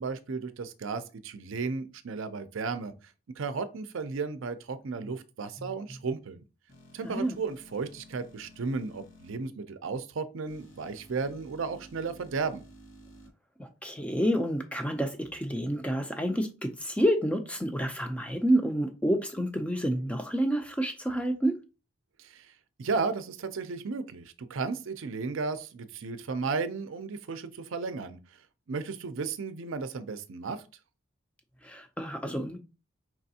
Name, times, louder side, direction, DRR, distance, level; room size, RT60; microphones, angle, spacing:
voice 1, 0.0-6.4 6.9-12.6 22.2-22.5 22.8-28.2 28.7-30.6, right 4 dB, 70° right, 0.5 m, -34 dB
sound 1, 6.7-9.4 10.4-13.3, equal, 60° left, 1.3 m, -53 dB
voice 2, 7.0-7.3 13.6-21.6 31.6-32.6, equal, 5° left, 0.4 m, -29 dB
4.7 x 3.3 x 2.7 m
head